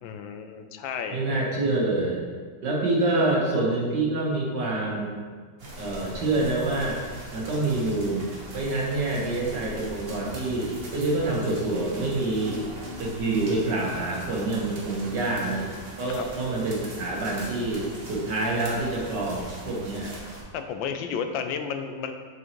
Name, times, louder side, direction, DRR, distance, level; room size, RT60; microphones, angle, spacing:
voice 1, 0.0-1.2 16.1-16.3 20.5-22.1, left 7 dB, 90° left, 7 dB, 1.4 m, -32 dB
voice 2, 1.1-2.2 2.6-5.2 5.8-7.0 7.3-12.7 13.0-15.7 16.0-20.1, right 2 dB, 65° right, -3 dB, 1.9 m, -27 dB
sound 1, 5.6-20.4, right 1 dB, 35° right, 1.2 m, -41 dB
7.1 x 6.3 x 3.0 m, 1.5 s
omnidirectional pair, 2.0 m